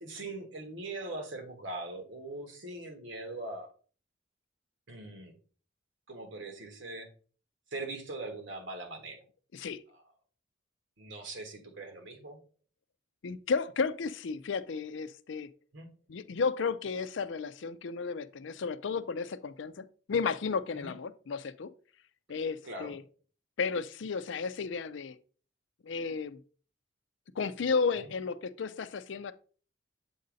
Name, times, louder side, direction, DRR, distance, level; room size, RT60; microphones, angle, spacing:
voice 1, 0.0-3.7 4.9-5.3 6.1-7.1 7.7-9.2 11.0-12.4 15.7-15.9 20.7-20.9 22.6-22.9 28.0-28.1, right 2 dB, 70° right, 1.4 m, -41 dB
voice 2, 13.2-15.5 16.1-21.7 22.3-23.0 23.6-25.2 25.8-26.4 27.4-29.3, left 5 dB, 70° left, 0.4 m, -33 dB
7.7 x 2.7 x 5.1 m
head